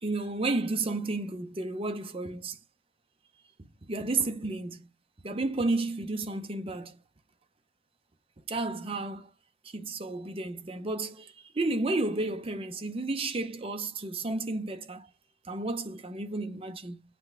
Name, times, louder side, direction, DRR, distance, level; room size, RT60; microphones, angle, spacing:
voice 1, 0.0-2.6 3.6-4.8 5.2-6.9 8.5-9.3 9.7-15.1 15.5-17.0, right 2 dB, 30° right, 0.6 m, -32 dB
7.7 x 3.3 x 4.7 m
head